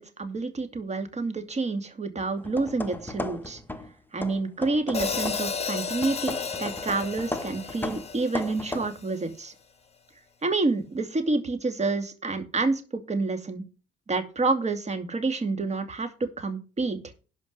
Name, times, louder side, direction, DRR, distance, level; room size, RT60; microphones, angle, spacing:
voice 1, 0.0-3.6 4.1-9.5 10.4-13.6 14.1-17.0, right 3 dB, 35° right, 8 dB, 2.6 m, -28 dB
sound 1, 2.4-3.9 4.2-5.6 6.0-8.9, left 1 dB, 10° left, 1.4 m, -36 dB
Hi-hat, 4.9-9.1, left 5 dB, 30° left, 1.9 m, -33 dB
11.5 x 5.2 x 6.6 m, 0.34 s
cardioid pair, 90°, 20 cm